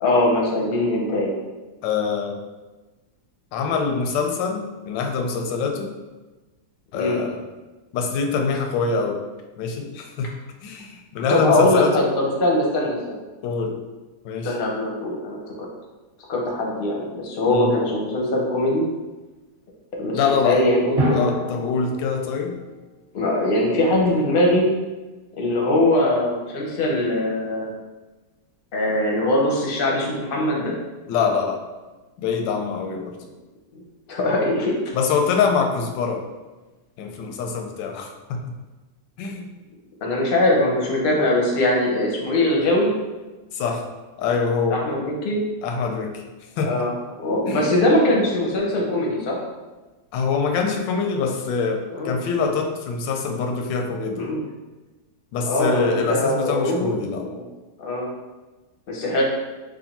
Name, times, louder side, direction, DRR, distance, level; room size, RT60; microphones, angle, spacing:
voice 1, 0.0-1.3 6.9-7.2 11.3-13.2 14.4-15.7 16.3-18.8 20.0-21.3 23.1-24.7 25.4-27.7 28.7-30.7 33.7-33.8 34.1-34.7 40.0-42.9 44.7-45.4 46.6-46.9 47.2-49.4 51.9-52.2 54.1-54.4 55.5-57.4 57.8-58.1 58.9-59.2, left 1 dB, 55° left, -2 dB, 0.6 m, -21 dB
voice 2, 1.8-2.4 3.5-6.0 6.9-7.4 7.9-9.2 9.6-12.1 13.4-13.8 14.2-14.6 17.5-17.7 20.1-20.7 21.1-22.6 31.1-31.6 32.2-33.2 34.9-36.3 37.0-38.5 39.2-39.5 43.5-43.9 44.2-44.8 45.6-46.3 46.6-46.9 47.5-47.7 50.1-54.3 55.3-57.3, left 5 dB, 85° left, 3 dB, 1.2 m, -24 dB
Drum, 21.0-22.8, equal, 40° right, 0.5 m, -27 dB
3.3 x 2.5 x 4.0 m, 1.2 s
omnidirectional pair, 1.9 m